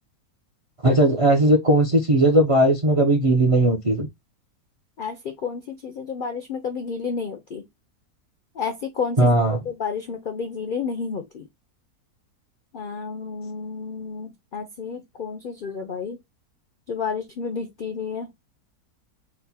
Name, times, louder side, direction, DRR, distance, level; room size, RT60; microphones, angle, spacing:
voice 1, 0.8-4.1 9.2-9.6, right 1 dB, 50° right, 0.4 m, -18 dB
voice 2, 5.0-7.6 8.6-9.3 9.7-11.5 12.7-16.2 16.9-18.3, left 5 dB, 70° left, 0.4 m, -31 dB
4.2 x 2.2 x 4.1 m
omnidirectional pair, 1.6 m